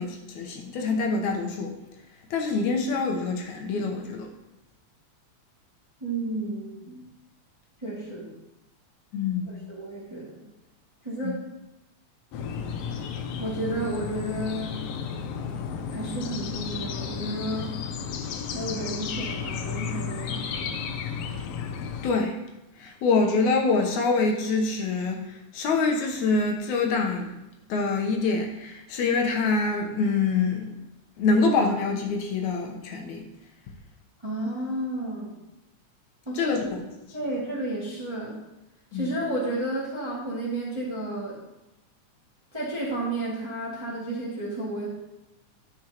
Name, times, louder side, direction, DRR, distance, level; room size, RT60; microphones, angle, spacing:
voice 1, 0.0-1.7 2.3-4.3 9.1-9.6 11.2-11.3 22.0-22.4 22.8-27.3 27.7-30.7 31.2-33.3 36.4-36.8 38.9-39.1, left 4 dB, 75° left, 2 dB, 2.3 m, -25 dB
voice 2, 6.0-7.0 7.8-8.3 9.4-10.4 11.0-11.4 13.4-14.8 15.9-17.7 18.5-20.9 34.2-35.4 36.2-36.6 37.1-38.4 38.9-41.4 42.5-44.9, right 1 dB, 10° right, -7 dB, 1.8 m, -32 dB
sound 1, 12.3-22.1, left 6 dB, 90° left, 1.4 m, -33 dB
11.5 x 7.8 x 3.0 m, 0.96 s
omnidirectional pair, 3.5 m